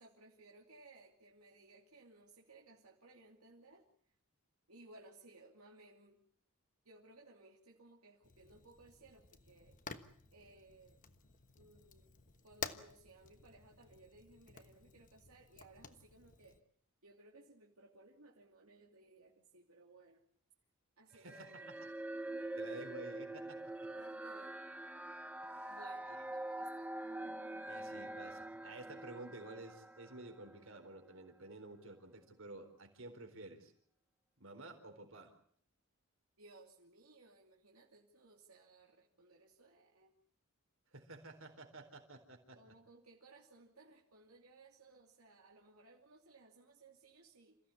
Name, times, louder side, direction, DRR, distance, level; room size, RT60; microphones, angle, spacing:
voice 1, 0.0-3.9 4.7-6.2 6.8-9.8 10.3-11.0 11.6-12.1 12.4-16.6 17.0-20.2 21.0-21.8 23.8-24.6 25.7-26.9 36.4-40.2 42.5-47.6, right 2 dB, 85° right, -1 dB, 2.9 m, -61 dB
Fire, 8.2-16.6, left 6 dB, 40° left, 1.2 m, -52 dB
voice 2, 21.1-21.8 22.5-23.9 25.4-25.8 26.1-26.2 27.7-33.7 34.4-35.3 40.9-42.6, right 2 dB, 65° right, 5 dB, 4.1 m, -52 dB
sound 1, 21.3-30.8, right 1 dB, 5° right, 1.0 m, -45 dB
27.5 x 15.5 x 8.5 m, 0.64 s
head